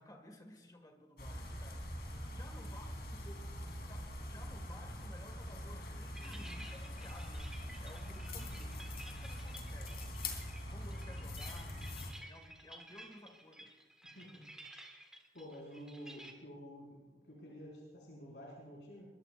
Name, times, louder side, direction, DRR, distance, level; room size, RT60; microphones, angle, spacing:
voice 1, 0.0-1.9 2.3-3.5 3.9-7.5 7.8-10.2 10.6-11.9 12.3-13.7, left 1 dB, 20° left, 4 dB, 1.9 m, -56 dB
sound 1, 1.2-12.1, left 1 dB, 60° left, 3.3 m, -43 dB
sound 2, 6.1-16.3, right 1 dB, 5° right, 1.8 m, -54 dB
voice 2, 14.1-14.4 15.3-19.1, equal, 80° left, -4 dB, 5.7 m, -50 dB
22.5 x 22.0 x 2.5 m, 1.2 s
head